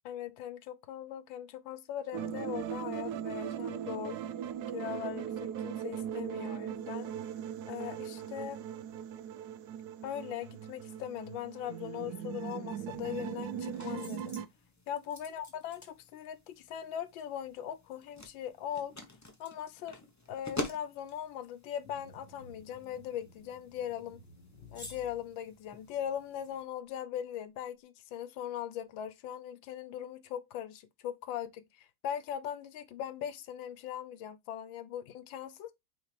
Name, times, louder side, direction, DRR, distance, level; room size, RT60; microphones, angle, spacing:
voice 1, 0.0-4.2 4.7-7.1 7.7-8.6 10.0-14.3 14.9-19.0 19.4-20.0 20.3-24.2 24.7-35.7, left 10 dB, 85° left, 1.4 m, -40 dB
sound 1, 2.1-14.5, right 9 dB, 70° right, 1.0 m, -39 dB
sound 2, 12.9-26.6, left 1 dB, 25° left, 0.3 m, -48 dB
sound 3, 21.8-26.4, left 2 dB, 60° left, 2.0 m, -57 dB
8.8 x 3.6 x 3.3 m
omnidirectional pair, 2.0 m